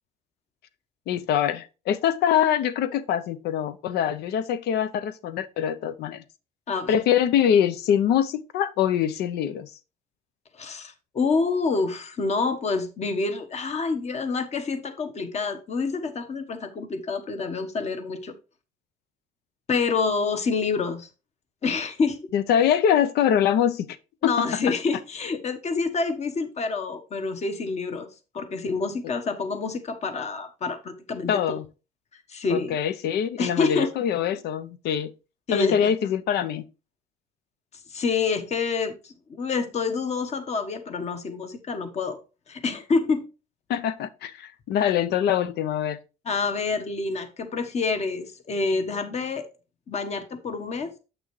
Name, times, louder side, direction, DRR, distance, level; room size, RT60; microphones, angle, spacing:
voice 1, 1.1-6.2 6.9-9.7 22.3-23.9 24.2-24.5 31.3-31.6 32.5-35.1 35.5-36.6 43.7-46.0, left 9 dB, 75° left, 0.7 m, -24 dB
voice 2, 6.7-7.0 10.5-18.3 19.7-21.1 21.6-22.3 24.2-28.1 28.3-31.4 32.3-32.8 33.4-33.9 35.5-35.9 37.9-42.2 42.5-43.3 46.2-49.5 49.9-50.9, left 4 dB, 40° left, 1.3 m, -27 dB
8.1 x 6.1 x 3.2 m
cardioid pair, 110°, 17 cm